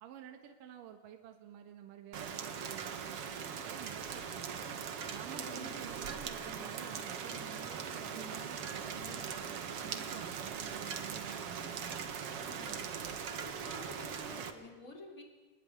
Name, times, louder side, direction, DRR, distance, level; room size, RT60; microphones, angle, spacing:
voice 1, 0.0-4.7 5.1-12.2, right 10 dB, 75° right, 5 dB, 3.0 m, -51 dB
Rain, 2.1-14.5, right 7 dB, 50° right, 2.1 m, -40 dB
voice 2, 5.3-5.7 12.2-12.9 13.4-15.2, left 2 dB, 20° left, 2 dB, 4.1 m, -50 dB
sound 1, 6.4-10.4, right 2 dB, 10° right, 4.8 m, -55 dB
25.5 x 19.5 x 9.6 m, 1.3 s
omnidirectional pair, 4.0 m